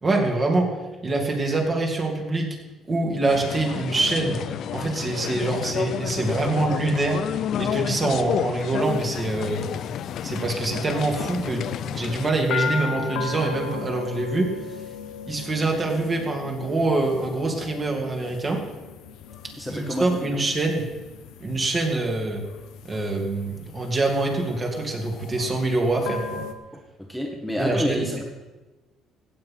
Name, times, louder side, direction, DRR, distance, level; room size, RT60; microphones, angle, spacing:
voice 1, 0.0-0.7 1.0-2.5 2.9-4.4 4.7-7.2 7.6-9.7 10.2-11.6 11.9-14.5 15.3-18.6 19.7-20.8 21.4-22.4 22.8-26.4 27.6-28.0, right 2 dB, 30° right, 1 dB, 2.9 m, -25 dB
sound 1, 3.3-12.3, left 9 dB, 65° left, 0.6 m, -30 dB
sound 2, 8.8-26.5, left 6 dB, 80° left, 1.1 m, -37 dB
voice 2, 19.6-20.1 27.1-28.2, equal, ahead, 0 dB, 1.6 m, -28 dB
15.0 x 8.6 x 5.8 m, 1.2 s
cardioid pair, 100°, 0 cm